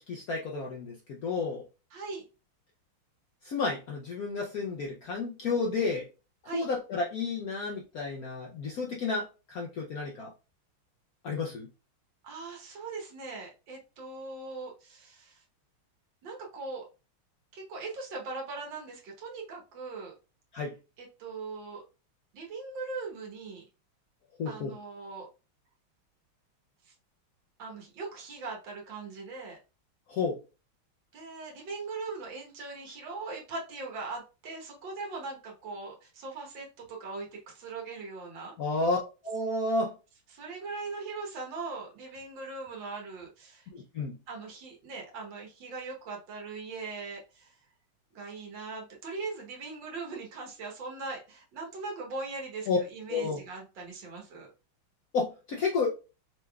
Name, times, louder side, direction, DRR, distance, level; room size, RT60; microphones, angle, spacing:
voice 1, 0.0-1.6 3.4-6.1 6.5-10.3 11.2-11.7 20.5-20.7 24.4-24.7 30.1-30.4 38.6-39.0 39.2-39.9 43.7-44.1 52.7-52.8 53.1-53.4 55.1-55.9, left 3 dB, 70° left, 0 dB, 0.8 m, -31 dB
voice 2, 1.9-2.3 6.4-6.7 12.2-15.4 16.2-16.9 17.5-20.1 21.0-21.8 22.3-23.6 24.5-25.3 26.9-27.0 27.6-29.6 31.1-38.5 40.3-43.7 44.3-47.5 48.1-54.5, right 3 dB, 65° right, 0 dB, 1.9 m, -40 dB
5.4 x 3.4 x 2.3 m, 0.31 s
omnidirectional pair, 2.3 m